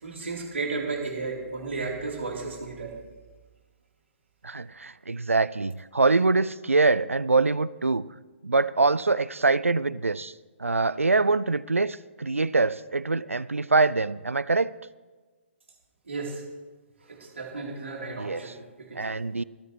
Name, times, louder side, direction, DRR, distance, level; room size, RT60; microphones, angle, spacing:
voice 1, 0.0-3.0 16.1-16.4 17.1-19.2, right 3 dB, 65° right, 0 dB, 3.5 m, -34 dB
voice 2, 4.4-8.0 8.4-10.3 10.6-14.7 18.2-18.5 19.0-19.4, right 3 dB, 80° right, 19 dB, 0.4 m, -24 dB
27.5 x 9.5 x 3.2 m, 1.3 s
figure-of-eight pair, 130°, 7 cm